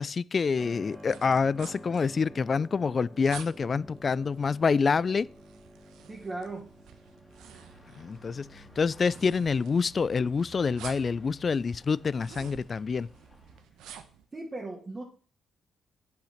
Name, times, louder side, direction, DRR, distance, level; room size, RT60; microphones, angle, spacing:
voice 1, 0.0-5.3 8.0-13.1, left 5 dB, 40° left, 0.3 m, -27 dB
Keyboard (musical), 0.6-13.0, equal, 5° right, 2.0 m, -52 dB
sound 1, 0.9-14.2, right 9 dB, 85° right, 1.0 m, -51 dB
sound 2, 3.6-13.6, equal, 10° left, 2.3 m, -56 dB
voice 2, 6.1-6.7 14.3-15.0, right 2 dB, 25° right, 1.9 m, -37 dB
8.9 x 5.8 x 5.8 m
cardioid pair, 90°, 0 cm